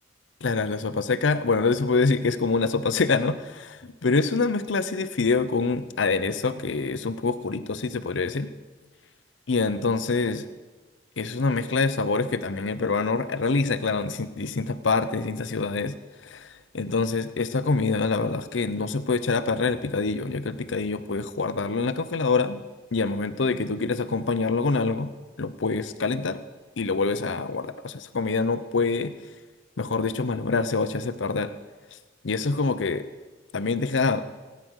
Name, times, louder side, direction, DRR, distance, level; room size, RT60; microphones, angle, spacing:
voice 1, 0.4-8.5 9.5-10.4 11.2-15.9 16.2-22.6 22.9-25.1 25.4-26.4 26.8-29.1 29.8-31.5 32.2-33.0 33.5-34.2, left 4 dB, 85° left, 12 dB, 0.7 m, -25 dB
17.0 x 9.5 x 6.4 m, 1.2 s
head